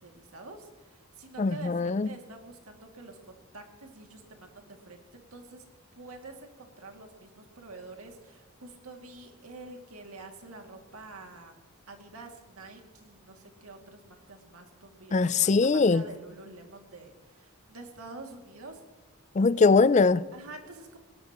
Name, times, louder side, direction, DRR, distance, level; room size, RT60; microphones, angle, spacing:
voice 1, 0.0-5.6 5.9-11.5 11.9-15.5 15.9-18.8 20.3-21.0, right 3 dB, 90° right, 2.5 m, -47 dB
voice 2, 1.4-2.1 15.1-16.1 19.3-20.2, left 4 dB, 35° left, 0.4 m, -22 dB
21.0 x 19.0 x 3.0 m
head